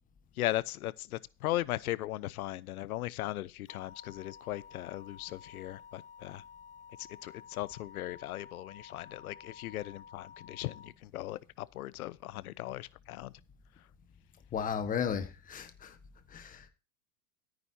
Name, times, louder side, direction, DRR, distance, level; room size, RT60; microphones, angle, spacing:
voice 1, 0.4-6.4 7.0-13.3, left 15 dB, 75° left, 0.9 m, -38 dB
sound 1, 3.7-10.9, left 7 dB, 35° left, 4.0 m, -53 dB
voice 2, 14.5-15.9 16.3-16.7, left 7 dB, 20° left, 1.4 m, -34 dB
13.5 x 9.4 x 2.7 m
supercardioid pair, 145°, 44 cm